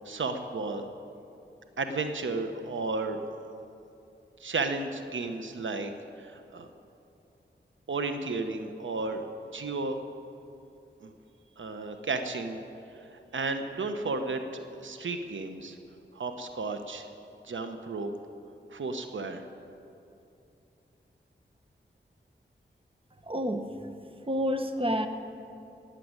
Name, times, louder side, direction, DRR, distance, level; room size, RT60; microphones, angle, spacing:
voice 1, 0.0-0.9 1.8-3.2 4.4-5.9 6.2-6.7 7.9-9.3 9.5-10.1 11.0-11.1 11.6-12.6 13.0-15.8 16.1-17.1 17.4-18.1 18.7-19.4, right 3 dB, 85° right, 7 dB, 1.0 m, -33 dB
voice 2, 23.2-23.7 24.3-25.1, equal, 30° right, 7 dB, 1.1 m, -28 dB
17.5 x 7.6 x 9.6 m, 2.7 s
wide cardioid pair, 65°, 19 cm